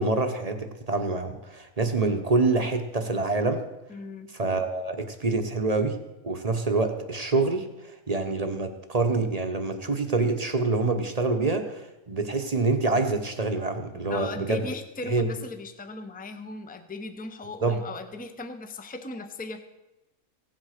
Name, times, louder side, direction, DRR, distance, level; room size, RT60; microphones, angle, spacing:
voice 1, 0.0-3.6 4.3-6.0 6.2-7.7 8.1-14.7 15.1-15.2 17.6-17.8, right 3 dB, 30° right, 6 dB, 0.9 m, -26 dB
voice 2, 3.9-4.3 14.1-19.6, left 2 dB, 10° left, 8 dB, 0.6 m, -38 dB
16.0 x 8.0 x 6.5 m, 1.0 s
omnidirectional pair, 1.5 m